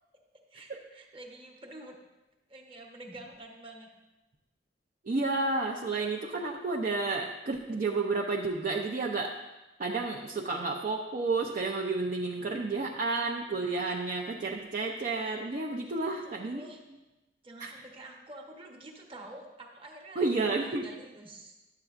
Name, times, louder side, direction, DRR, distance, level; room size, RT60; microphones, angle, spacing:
voice 1, 0.5-2.0 2.5-3.9 10.1-10.4 15.9-16.0 16.2-16.8 17.4-21.5, right 1 dB, 30° right, 1 dB, 1.0 m, -48 dB
voice 2, 5.0-9.4 9.8-16.6 17.6-17.7 20.2-20.9, right 3 dB, 45° right, 0 dB, 0.5 m, -31 dB
11.5 x 7.8 x 2.5 m, 1.1 s
head